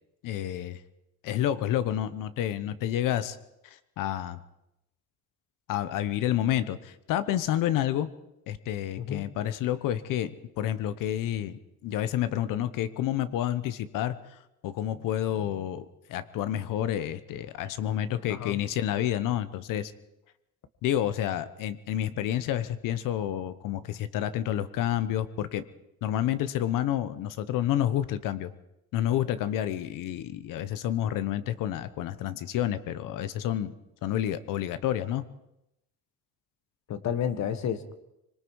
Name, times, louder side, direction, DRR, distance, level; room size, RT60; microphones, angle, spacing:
voice 1, 0.2-0.8 1.2-3.4 3.6-4.4 5.7-8.1 8.5-11.5 11.8-19.9 20.8-25.6 26.0-28.5 28.9-33.7 34.0-35.2, left 11 dB, 80° left, 13 dB, 1.1 m, -29 dB
voice 2, 18.3-18.6 36.9-37.9, left 8 dB, 60° left, 11 dB, 1.7 m, -31 dB
25.0 x 22.0 x 4.8 m, 0.87 s
cardioid pair, 130°, 32 cm